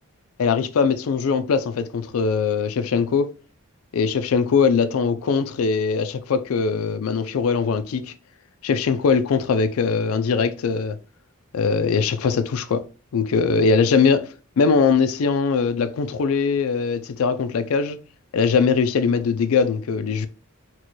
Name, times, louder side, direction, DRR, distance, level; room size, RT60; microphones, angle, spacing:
voice 1, 0.4-3.3 3.9-8.1 8.6-11.0 11.5-12.8 13.1-18.0 18.3-20.3, left 5 dB, 70° left, 0.4 m, -21 dB
4.3 x 2.2 x 3.0 m
head